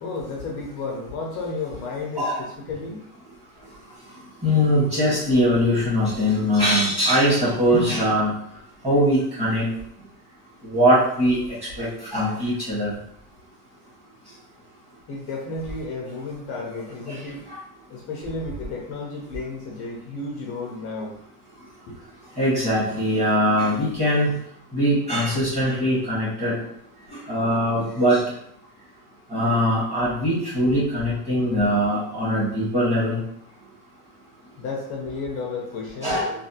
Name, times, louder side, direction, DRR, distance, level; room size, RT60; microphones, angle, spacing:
voice 1, 0.0-3.1 15.1-17.4 17.9-21.1 21.9-22.0 34.6-36.2, left 3 dB, 30° left, -1 dB, 0.4 m, -32 dB
voice 2, 4.4-8.3 8.8-9.7 10.6-11.4 11.8-12.9 17.1-17.2 17.5-17.6 22.4-24.3 24.7-26.5 27.1-28.2 29.3-33.2 36.0-36.3, equal, 15° right, -8 dB, 1.4 m, -21 dB
3.2 x 2.3 x 2.7 m, 0.69 s
supercardioid pair, 145°, 50 cm